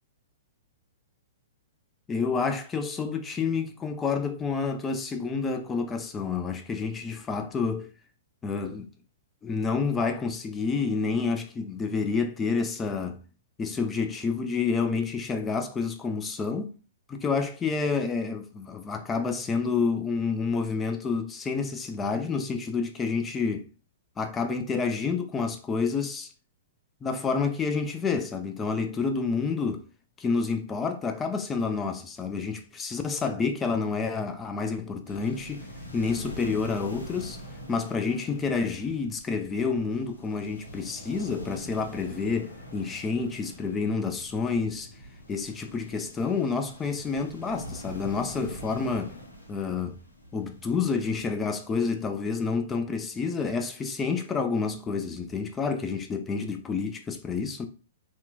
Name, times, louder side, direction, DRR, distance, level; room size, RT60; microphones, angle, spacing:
voice 1, 2.1-7.9 8.4-8.9 9.4-13.2 13.6-16.7 17.1-23.7 24.2-26.3 27.0-29.8 30.2-35.7 35.9-37.4 37.7-44.9 45.3-49.2 49.5-50.0 50.3-57.6, left 5 dB, 15° left, 0.4 m, -29 dB
sound 1, 35.0-51.2, equal, 90° left, 0.7 m, -44 dB
2.8 x 2.2 x 2.3 m
figure-of-eight pair, 115°, 0 cm